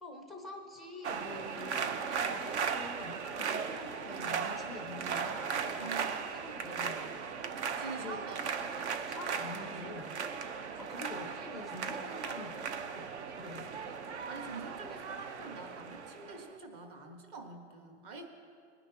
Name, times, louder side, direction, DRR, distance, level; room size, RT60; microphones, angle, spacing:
voice 1, 0.0-6.0 6.3-7.1 8.0-8.2 9.1-10.1 10.8-12.6 12.9-13.0 13.3-13.8, left 3 dB, ahead, 2 dB, 0.4 m, -46 dB
sound 1, 1.0-16.5, right 6 dB, 65° right, 1.0 m, -37 dB
voice 2, 4.1-4.6 5.8-6.2 7.7-8.9 14.3-18.3, right 4 dB, 35° right, 4 dB, 1.4 m, -46 dB
20.5 x 9.8 x 2.9 m, 2.3 s
hypercardioid pair, 160°, 37 cm